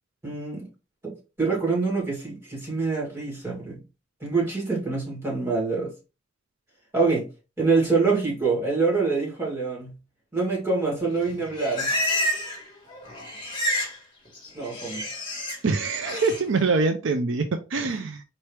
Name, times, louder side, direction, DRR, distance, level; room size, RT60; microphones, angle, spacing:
voice 1, 0.2-0.7 1.0-3.8 4.2-5.9 6.9-7.3 7.6-9.9 10.3-11.9 14.5-15.0, right 4 dB, 15° right, 2.3 m, -25 dB
Livestock farm animals working animals, 11.2-12.7 12.9-14.0 14.2-15.6 16.0-16.4, left 1 dB, 25° left, 1.5 m, -29 dB
voice 2, 15.6-18.2, right 4 dB, 70° right, 0.5 m, -24 dB
4.5 x 3.0 x 3.2 m
head